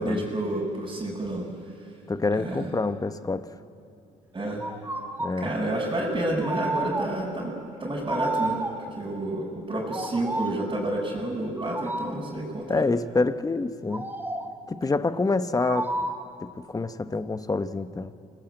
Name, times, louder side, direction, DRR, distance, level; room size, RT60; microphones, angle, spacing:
voice 1, 0.0-1.5 2.3-2.7 4.3-4.6 5.4-8.6 8.9-12.8, right 1 dB, 30° right, -7 dB, 6.0 m, -29 dB
voice 2, 2.1-3.5 5.2-5.5 12.7-14.1 14.7-16.1 16.4-18.1, left 3 dB, 20° left, 11 dB, 1.1 m, -27 dB
sound 1, 4.6-5.4 6.4-7.3 8.1-9.0 9.8-10.7 11.6-12.3 13.9-14.6 15.6-16.4, right 2 dB, 10° right, 1.7 m, -31 dB
27.5 x 19.0 x 8.0 m, 2.6 s
cardioid pair, 75°, 16 cm